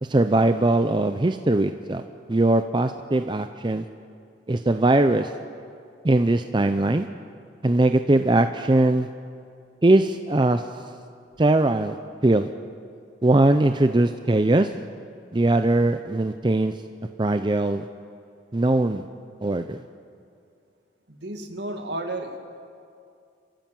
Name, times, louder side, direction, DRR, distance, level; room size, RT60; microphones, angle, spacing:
voice 1, 0.0-3.9 4.5-5.3 6.0-7.1 7.6-9.1 9.8-10.7 11.4-12.0 12.2-12.5 13.2-14.7 15.3-16.8 17.2-17.9 18.5-19.0 19.4-19.8, right 2 dB, 25° right, 8 dB, 0.5 m, -20 dB
voice 2, 21.1-22.4, right 1 dB, 65° right, 4 dB, 2.1 m, -32 dB
28.5 x 14.0 x 7.6 m, 2.4 s
head